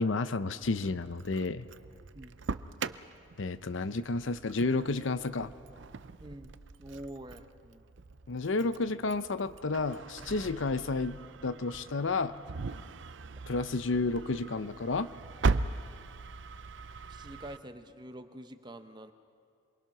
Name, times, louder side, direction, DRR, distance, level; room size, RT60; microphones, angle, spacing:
voice 1, 0.0-1.6 3.4-5.5 8.3-12.4 13.5-15.1, left 3 dB, 65° left, 13 dB, 0.7 m, -31 dB
Engine starting, 0.6-17.6, right 4 dB, 60° right, 0.5 m, -39 dB
voice 2, 6.2-7.8 17.1-19.1, right 1 dB, 20° right, 8 dB, 0.9 m, -46 dB
27.5 x 22.5 x 6.0 m, 2.4 s
head